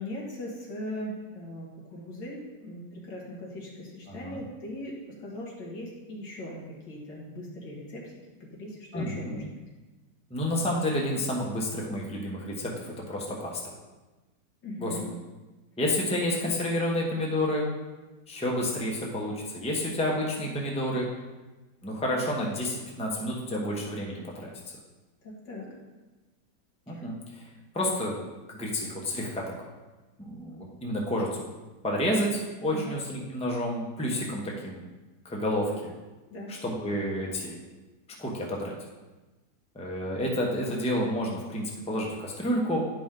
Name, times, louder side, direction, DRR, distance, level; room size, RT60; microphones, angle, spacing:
voice 1, 0.0-8.1 8.4-9.4 14.6-15.1 25.2-25.7 26.9-27.0 32.7-33.0 36.3-36.5, left 1 dB, 90° left, -3 dB, 2.3 m, -39 dB
voice 2, 4.1-4.4 8.9-9.4 10.3-13.6 14.8-14.9 15.8-17.7 18.3-21.1 21.8-24.5 26.9-27.2 27.7-28.2 28.5-29.4 30.2-31.5 31.8-34.8 35.2-35.9 36.5-37.6 38.2-38.7 39.7-42.8, left 1 dB, 5° left, -2 dB, 0.8 m, -30 dB
10.0 x 5.1 x 3.8 m, 1.2 s
omnidirectional pair, 1.9 m